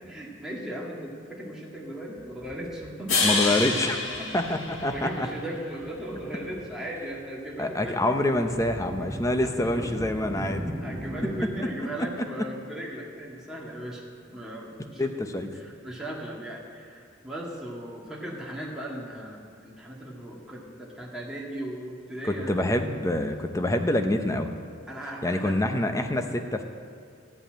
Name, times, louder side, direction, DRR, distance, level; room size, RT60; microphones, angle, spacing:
voice 1, 0.0-3.2 4.2-4.6 4.9-8.2 9.4-9.9 10.3-10.5 10.8-14.0 14.3-15.1 15.4-22.6 24.9-25.6, right 1 dB, 5° right, -4 dB, 1.8 m, -37 dB
sound 1, 2.2-3.5 3.7-5.4 5.7-6.6 6.9-11.4, equal, 20° right, 2.0 m, -39 dB
sound 2, 3.1-5.4, left 3 dB, 90° left, 1.8 m, -27 dB
voice 2, 3.2-4.0 4.3-5.3 7.6-10.6 15.0-15.5 22.3-24.5 25.2-26.6, left 1 dB, 15° left, 6 dB, 0.7 m, -26 dB
13.5 x 5.5 x 8.8 m, 2.3 s
head